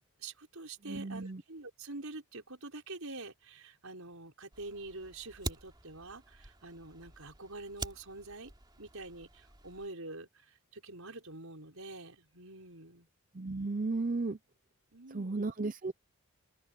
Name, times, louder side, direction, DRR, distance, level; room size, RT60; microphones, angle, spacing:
voice 1, 0.2-8.5 8.8-13.1 14.9-15.5, right 2 dB, 70° right, 5.3 m, -46 dB
voice 2, 0.9-1.4 13.3-14.4 15.1-15.9, right 3 dB, 35° right, 0.6 m, -34 dB
Fire, 4.5-9.9, right 2 dB, 20° right, 2.9 m, -46 dB
head